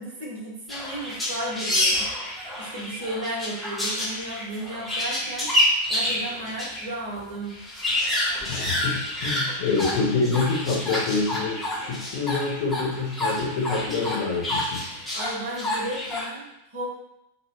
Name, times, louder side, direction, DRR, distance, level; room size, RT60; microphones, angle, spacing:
voice 1, 0.0-2.1 2.6-5.5 5.9-7.6 15.1-16.9, right 1 dB, 55° right, -4 dB, 0.9 m, -34 dB
sound 1, 0.7-6.9 7.2-7.3 7.5-16.3, left 1 dB, 10° left, 0.8 m, -28 dB
voice 2, 8.4-14.9, left 4 dB, 50° left, -5 dB, 0.7 m, -27 dB
2.2 x 2.1 x 3.2 m, 0.86 s
figure-of-eight pair, 90°, 0 cm